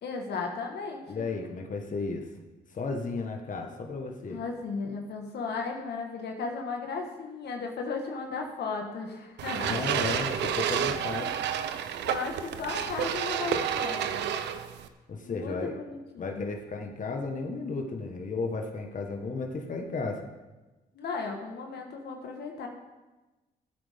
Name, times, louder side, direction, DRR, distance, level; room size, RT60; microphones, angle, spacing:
voice 1, 0.0-1.2 4.3-9.8 12.0-14.2 15.2-16.4 20.9-22.7, left 4 dB, 70° left, 2 dB, 1.6 m, -35 dB
voice 2, 1.1-2.2 2.7-4.4 9.6-11.3 15.1-15.7 16.2-20.2, left 3 dB, 50° left, 2 dB, 1.6 m, -34 dB
sound 1, 9.4-14.9, right 9 dB, 80° right, 0.7 m, -30 dB
15.5 x 8.6 x 3.7 m, 1.1 s
supercardioid pair, 70°, 18 cm